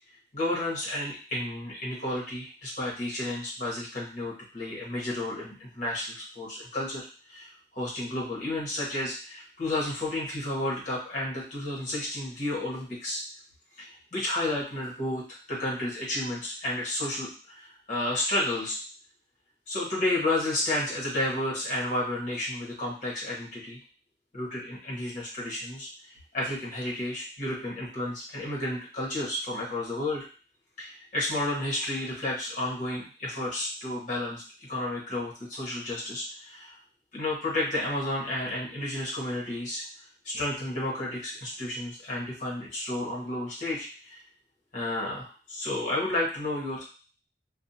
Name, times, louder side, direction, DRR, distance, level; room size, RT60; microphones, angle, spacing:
voice 1, 0.3-13.2 13.8-15.2 15.5-18.8 19.7-23.8 24.3-30.2 30.8-34.4 34.7-36.8 37.1-39.8 40.2-44.2 44.7-46.8, left 1 dB, 45° left, -5 dB, 1.0 m, -32 dB
2.6 x 2.1 x 2.7 m, 0.38 s
head